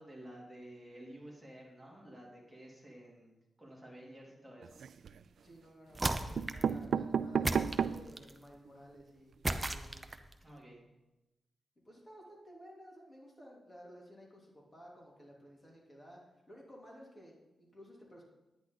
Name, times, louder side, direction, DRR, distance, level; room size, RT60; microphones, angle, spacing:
voice 1, 0.0-4.8 10.4-10.8, right 1 dB, 5° right, -4 dB, 3.3 m, -52 dB
sound 1, 4.6-5.2 6.0-6.1 6.4-8.2 8.7-8.8 8.9-9.0 9.3-9.5, right 7 dB, 75° right, 0.3 m, -33 dB
voice 2, 5.4-10.0 11.8-16.2 16.5-18.2, equal, 20° left, -3 dB, 3.3 m, -55 dB
sound 2, 5.9-6.7 7.4-8.4 9.4-10.3, right 2 dB, 25° right, 0.7 m, -35 dB
10.0 x 9.9 x 4.0 m, 1.0 s
cardioid pair, 90°, 0 cm